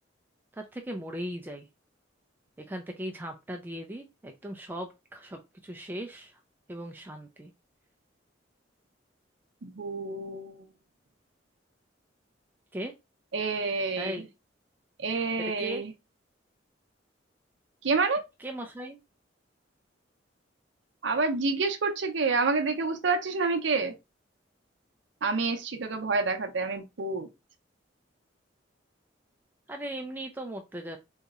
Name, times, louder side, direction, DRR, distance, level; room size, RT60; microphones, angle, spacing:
voice 1, 0.5-1.7 2.7-6.3 6.7-7.5 12.7-12.9 14.0-14.2 15.6-15.8 18.4-19.0 29.7-31.0, right 1 dB, 10° right, 0.3 m, -38 dB
voice 2, 9.6-10.6 13.3-14.3 15.0-15.9 17.8-18.2 21.0-23.9 25.2-27.3, right 4 dB, 70° right, 0.6 m, -28 dB
4.0 x 2.7 x 2.4 m
head